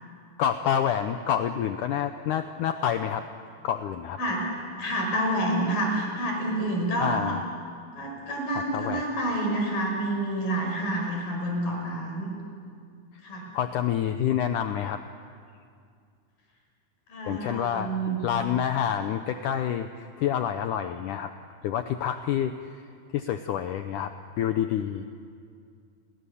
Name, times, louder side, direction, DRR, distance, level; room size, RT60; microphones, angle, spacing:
voice 1, 0.4-3.2 3.6-4.2 7.0-7.4 8.5-9.0 13.5-15.0 17.3-21.3 21.6-22.5 23.1-25.1, left 9 dB, 80° left, 8 dB, 1.9 m, -28 dB
voice 2, 4.8-7.4 8.0-12.3 13.2-13.5 17.1-18.2, right 1 dB, 60° left, 0 dB, 7.0 m, -28 dB
30.0 x 22.5 x 7.0 m, 2.3 s
omnidirectional pair, 4.4 m